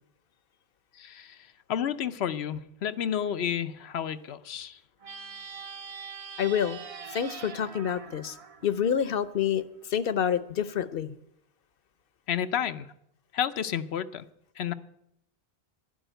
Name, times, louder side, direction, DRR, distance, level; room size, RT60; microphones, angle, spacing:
voice 1, 0.9-4.8 12.3-12.9 13.3-14.3 14.6-14.7, left 9 dB, 90° left, 1.0 m, -31 dB
sound 1, 5.0-9.4, right 5 dB, 40° right, 0.7 m, -43 dB
voice 2, 6.4-6.8 7.1-8.4 8.6-9.6 9.9-11.2, left 8 dB, 65° left, 0.9 m, -27 dB
11.5 x 11.0 x 9.1 m
omnidirectional pair, 1.0 m